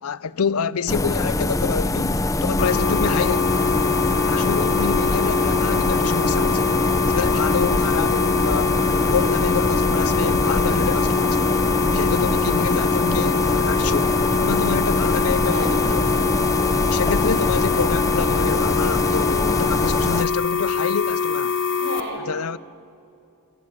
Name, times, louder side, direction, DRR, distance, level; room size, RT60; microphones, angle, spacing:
voice 1, 0.0-3.7 4.2-6.8 7.1-8.7 9.1-14.1 14.4-16.3 16.8-21.6 22.3-22.6, left 6 dB, 85° left, 0.6 m, -27 dB
sound 1, 0.9-20.2, left 2 dB, 15° left, 0.6 m, -23 dB
sound 2, 2.6-22.0, left 5 dB, 55° left, 1.4 m, -23 dB
voice 2, 21.8-22.2, right 1 dB, 50° right, 6.2 m, -33 dB
27.0 x 17.5 x 8.4 m
head